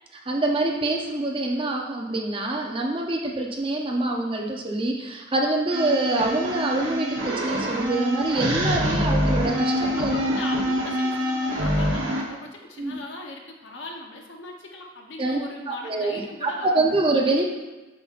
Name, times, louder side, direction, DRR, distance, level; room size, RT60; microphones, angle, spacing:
voice 1, 0.2-10.2 12.8-13.0 15.2-15.4 15.7-17.5, right 2 dB, 25° right, 0 dB, 0.7 m, -25 dB
sound 1, 5.7-12.2, equal, 65° right, 1.0 m, -25 dB
voice 2, 10.0-17.0, left 2 dB, 65° left, 1 dB, 0.9 m, -39 dB
7.7 x 5.8 x 2.5 m, 1.2 s
head